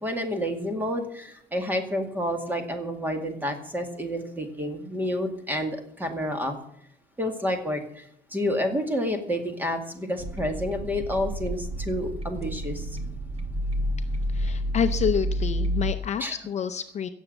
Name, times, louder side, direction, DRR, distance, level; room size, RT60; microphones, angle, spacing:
voice 1, 0.0-6.6 7.2-13.0 16.2-16.4, equal, 10° right, 5 dB, 2.1 m, -29 dB
sound 1, 10.2-15.9, equal, 35° right, 1.7 m, -29 dB
voice 2, 14.3-17.1, left 7 dB, 40° left, 8 dB, 0.6 m, -28 dB
17.0 x 7.3 x 7.9 m, 0.69 s
cardioid pair, 170°, 18 cm